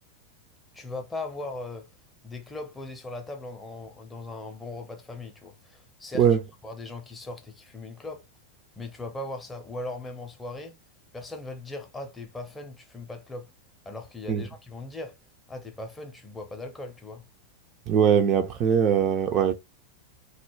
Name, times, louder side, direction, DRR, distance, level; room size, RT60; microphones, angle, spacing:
voice 1, 0.7-1.9 2.2-6.3 6.6-8.2 8.8-10.8 11.1-13.5 13.9-15.2 15.5-17.3, left 2 dB, 10° left, 0.6 m, -39 dB
voice 2, 17.9-19.5, right 8 dB, 35° right, 0.4 m, -21 dB
2.2 x 2.0 x 3.0 m
figure-of-eight pair, 90°, 0 cm